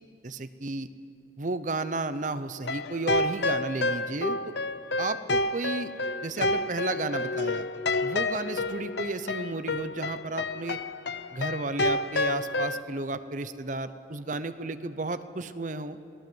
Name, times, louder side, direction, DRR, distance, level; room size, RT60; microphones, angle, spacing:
voice 1, 0.2-0.9 1.4-4.5 5.0-5.9 6.2-7.7 8.0-10.8 11.3-16.0, right 3 dB, 40° right, 12 dB, 0.7 m, -33 dB
sound 1, 2.6-12.8, left 2 dB, 65° left, 0.7 m, -29 dB
27.5 x 19.0 x 8.0 m, 2.6 s
head